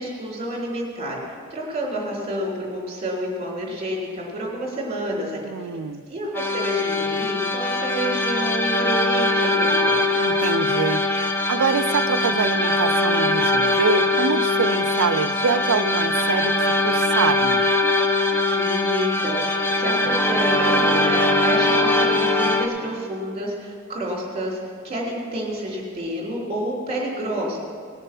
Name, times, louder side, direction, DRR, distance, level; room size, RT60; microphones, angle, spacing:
voice 1, 0.0-5.4 6.1-10.0 18.6-24.6 24.8-27.6, equal, 30° right, -2 dB, 3.2 m, -29 dB
voice 2, 5.4-6.0 10.2-11.0 11.5-17.7, right 5 dB, 80° right, 14 dB, 0.5 m, -25 dB
sound 1, 6.3-22.7, left 2 dB, 10° left, 0.8 m, -21 dB
18.5 x 6.8 x 5.9 m, 2.2 s
head